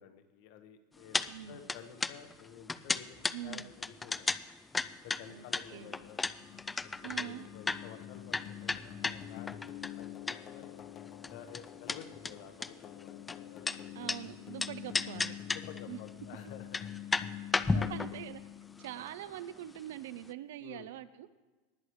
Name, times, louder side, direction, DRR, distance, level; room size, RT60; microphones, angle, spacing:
voice 1, 0.0-4.3 4.9-6.3 6.8-10.8 11.3-14.1 14.4-14.8 15.5-16.8 17.4-17.9 20.6-20.9, left 8 dB, 60° left, 7 dB, 1.3 m, -52 dB
sound 1, 1.1-1.3 1.5-10.6 10.9-14.2 14.6-15.8 16.1-16.2 16.6-19.9 20.2-20.3, left 3 dB, 10° left, 0.3 m, -34 dB
voice 2, 1.3-1.6 3.3-3.7 5.3-5.9 7.0-7.5 13.9-15.4 15.9-16.0 17.9-18.4 18.8-21.3, right 13 dB, 80° right, 14 dB, 0.6 m, -44 dB
sound 2, 5.1-19.3, left 11 dB, 30° left, 0.7 m, -46 dB
19.0 x 9.7 x 3.2 m, 1.3 s
supercardioid pair, 145°, 0 cm